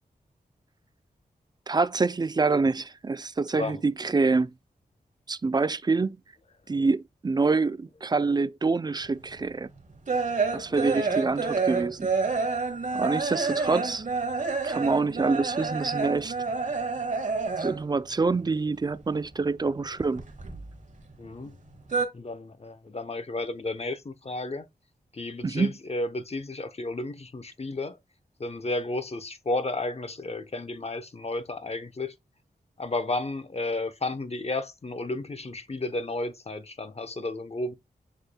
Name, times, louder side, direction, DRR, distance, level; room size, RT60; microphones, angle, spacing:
voice 1, 1.7-4.5 5.3-6.2 6.7-9.7 10.5-12.1 12.9-14.1 14.6-16.3 17.6-20.2 25.4-25.7, right 4 dB, 25° right, 0.3 m, -26 dB
sound 1, 9.2-18.0 18.2-19.4 19.7-21.1 21.4-22.1, right 4 dB, 50° right, 1.1 m, -29 dB
voice 2, 10.7-11.1 21.2-21.6 22.1-24.7 25.1-28.0 28.4-32.1 32.8-37.7, left 2 dB, 40° left, 0.8 m, -32 dB
6.4 x 3.2 x 2.2 m
cardioid pair, 45°, 17 cm